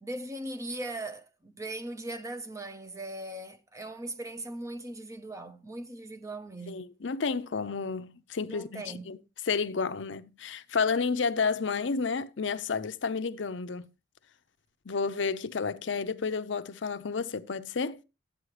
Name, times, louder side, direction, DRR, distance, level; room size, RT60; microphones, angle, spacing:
voice 1, 0.0-6.9 8.4-9.1, right 1 dB, 15° right, 0.8 m, -39 dB
voice 2, 6.7-9.2 9.5-13.8 14.9-18.0, left 5 dB, 80° left, 0.6 m, -31 dB
11.0 x 8.7 x 3.2 m
head